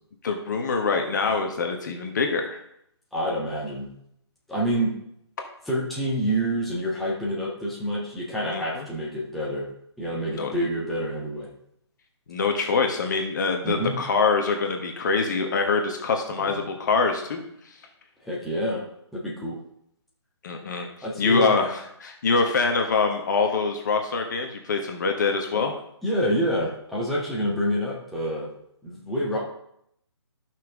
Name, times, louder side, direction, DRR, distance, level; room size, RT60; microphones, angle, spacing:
voice 1, 0.2-2.6 8.5-8.8 10.3-10.5 12.3-17.4 20.4-20.9 21.2-25.7, left 4 dB, 40° left, 3 dB, 1.3 m, -24 dB
voice 2, 3.1-3.9 4.5-4.9 5.6-9.7 10.0-11.5 13.6-14.0 16.4-16.6 18.2-18.8 19.1-19.6 21.0-21.6 25.5-25.7 26.0-28.5 28.8-29.4, equal, ahead, -6 dB, 1.5 m, -27 dB
13.0 x 5.9 x 3.7 m, 0.74 s
figure-of-eight pair, 140°, 15 cm